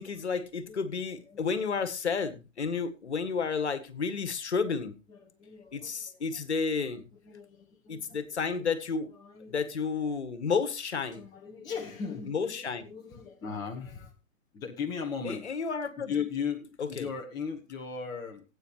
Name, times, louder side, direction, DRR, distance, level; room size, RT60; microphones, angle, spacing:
voice 1, 0.0-5.0 5.7-7.1 7.9-9.1 9.5-11.2 12.3-12.8 15.2-16.1 16.8-17.1, left 5 dB, 55° left, 12 dB, 1.7 m, -31 dB
voice 2, 5.1-6.2 7.2-8.2 9.1-9.5 11.1-14.1 14.5-15.4 16.1-18.4, left 6 dB, 10° left, 2 dB, 1.0 m, -37 dB
18.0 x 8.8 x 3.0 m, 0.30 s
figure-of-eight pair, 130°, 39 cm